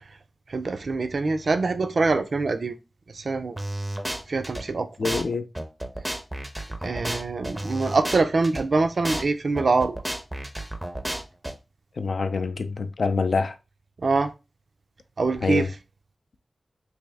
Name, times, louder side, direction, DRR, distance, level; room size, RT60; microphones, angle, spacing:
voice 1, 0.5-2.7 3.1-3.6 4.3-4.9 6.8-10.0 14.0-14.3 15.2-15.7, right 3 dB, 65° right, 0.4 m, -24 dB
sound 1, 3.6-4.6 5.1-5.2 5.6-8.6 9.1-9.2 9.6-11.5, right 1 dB, 10° right, 0.5 m, -31 dB
voice 2, 5.0-5.5 12.0-13.5 15.4-15.7, left 4 dB, 75° left, 0.3 m, -25 dB
3.3 x 2.6 x 3.3 m
wide cardioid pair, 110°, 0 cm